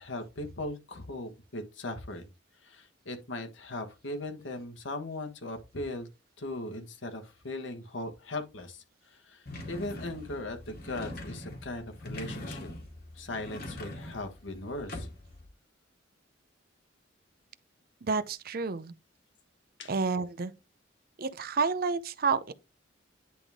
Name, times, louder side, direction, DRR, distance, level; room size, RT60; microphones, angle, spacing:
voice 1, 0.0-2.2 2.6-6.1 6.4-12.7 13.1-15.1 19.8-19.9, left 2 dB, 80° left, 1.4 m, -39 dB
sound 1, 9.5-15.5, left 1 dB, 55° left, 2.1 m, -42 dB
voice 2, 18.0-18.9 19.9-20.5 21.2-22.5, right 4 dB, 50° right, 0.5 m, -29 dB
10.0 x 3.5 x 3.6 m
head